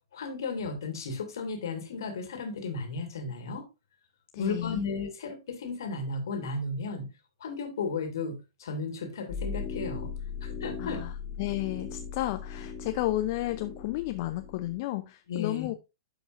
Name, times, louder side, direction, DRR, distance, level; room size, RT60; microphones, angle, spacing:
voice 1, 0.1-3.7 4.4-7.1 7.4-10.1 10.4-11.0 15.3-15.7, left 4 dB, 55° left, 2.1 m, -34 dB
voice 2, 4.3-4.8 10.8-11.1 11.4-15.7, left 16 dB, 40° left, 0.5 m, -32 dB
sound 1, 9.3-14.8, left 5 dB, 25° left, 1.7 m, -38 dB
12.5 x 4.9 x 2.5 m
figure-of-eight pair, 105°, 3 cm